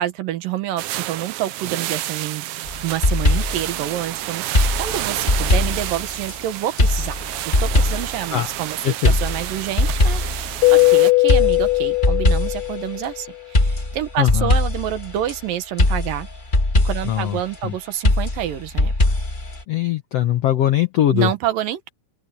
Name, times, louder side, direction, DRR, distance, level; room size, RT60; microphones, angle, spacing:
voice 1, 0.0-2.5 2.8-7.2 7.6-16.3 16.8-19.1 21.1-21.9, right 12 dB, 70° right, 2.8 m, -28 dB
sound 1, 0.8-11.1, right 15 dB, 90° right, 1.7 m, -30 dB
sound 2, 2.7-3.7 4.5-6.4 6.8-8.2 9.0-10.9 11.3-12.7 13.5-15.4 15.8-17.2 18.0-19.6, left 2 dB, 30° left, 0.8 m, -20 dB
voice 2, 8.8-9.2 14.2-14.5 17.0-17.4 17.6-17.7 19.7-21.3, left 12 dB, 85° left, 1.4 m, -20 dB
Keyboard (musical), 10.6-13.1, left 23 dB, 55° left, 2.5 m, -17 dB
open air
omnidirectional pair, 4.4 m